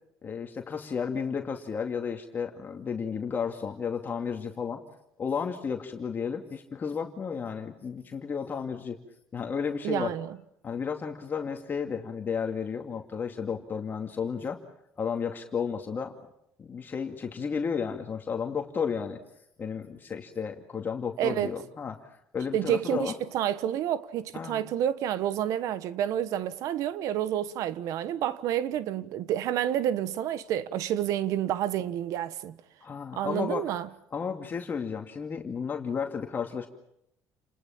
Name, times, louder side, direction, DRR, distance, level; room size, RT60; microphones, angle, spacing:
voice 1, 0.2-4.8 5.2-9.0 9.3-10.1 10.6-14.6 15.0-16.1 16.6-19.2 19.6-21.9 22.3-23.1 24.3-24.6 32.8-33.6 34.1-36.7, left 6 dB, 35° left, 2.4 m, -33 dB
voice 2, 9.8-10.4 21.2-21.5 22.5-32.6 33.2-33.9, right 11 dB, 70° right, 1.3 m, -29 dB
30.0 x 20.0 x 7.3 m
cardioid pair, 105°, 6 cm